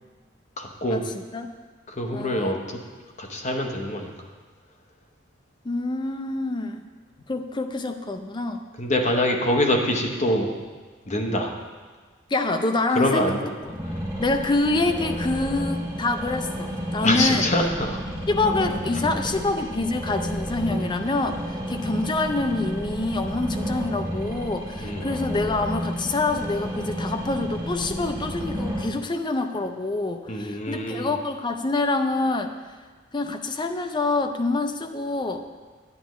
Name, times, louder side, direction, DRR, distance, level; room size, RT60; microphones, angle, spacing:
voice 1, 0.6-1.0 1.9-2.8 3.2-4.1 8.8-10.6 11.1-11.5 12.9-13.5 17.0-18.0 20.6-20.8 24.8-25.1 30.3-31.1, left 1 dB, 40° left, 2 dB, 0.9 m, -25 dB
voice 2, 2.1-2.6 5.6-6.9 7.3-8.6 12.3-13.3 14.2-17.5 18.3-32.5 33.1-35.4, left 2 dB, 25° left, 6 dB, 0.5 m, -26 dB
sound 1, 13.6-28.8, equal, 15° right, 2.7 m, -31 dB
9.4 x 9.1 x 3.1 m, 1.4 s
head